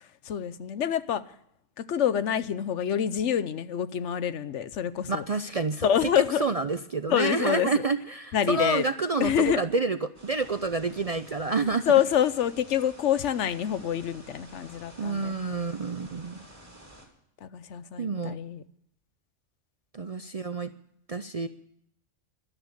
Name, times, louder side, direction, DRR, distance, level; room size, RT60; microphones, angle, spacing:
voice 1, 0.3-1.2 1.8-5.2 5.8-6.5 7.1-7.7 8.3-8.8 9.2-9.6 11.9-15.4 17.4-18.6, left 9 dB, 75° left, 14 dB, 1.1 m, -26 dB
voice 2, 5.1-6.1 6.4-11.9 15.0-16.4 18.0-18.4 19.9-20.7 21.1-21.5, right 3 dB, 45° right, 10 dB, 0.5 m, -28 dB
sound 1, 10.1-17.1, right 1 dB, 15° right, 3.4 m, -51 dB
13.0 x 12.5 x 6.7 m, 0.73 s
omnidirectional pair, 1.3 m